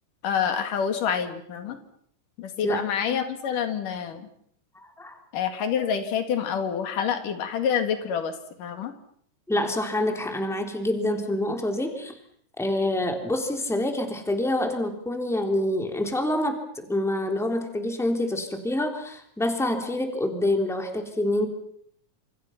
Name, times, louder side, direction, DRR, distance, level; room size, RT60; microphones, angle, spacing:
voice 1, 0.2-1.8 2.4-4.3 5.3-8.3 8.6-8.9, left 7 dB, 85° left, 7 dB, 3.7 m, -27 dB
voice 2, 2.6-3.2 4.7-5.2 9.5-12.1 12.6-21.5, left 1 dB, ahead, 4 dB, 3.0 m, -27 dB
28.5 x 27.5 x 5.8 m, 0.65 s
omnidirectional pair, 3.7 m